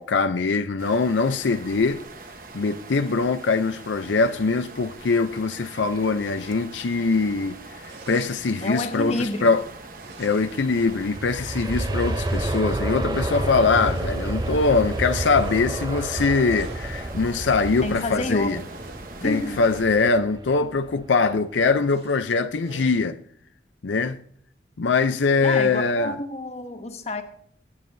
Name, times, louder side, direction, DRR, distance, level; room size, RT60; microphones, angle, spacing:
voice 1, 0.0-2.0 2.5-9.6 10.2-18.6 19.2-23.2 23.8-24.2 24.8-26.2, left 4 dB, 90° left, 0.6 m, -22 dB
sound 1, 0.8-19.8, right 3 dB, 50° right, 1.1 m, -43 dB
sound 2, 7.9-8.7 9.8-10.8 11.3-13.0 13.6-14.3 14.9-15.7 16.4-17.0 17.6-18.1 18.6-19.1 19.7-20.1 20.5-20.6 20.9-21.0 21.7-22.2 22.6-23.1, right 2 dB, 75° right, 1.7 m, -45 dB
voice 2, 8.6-9.5 17.8-18.6 19.2-19.6 25.4-27.2, left 2 dB, 35° left, 1.2 m, -29 dB
Aircraft, 10.4-21.3 21.7-21.8, right 1 dB, 20° right, 0.6 m, -30 dB
21.5 x 9.7 x 2.7 m
head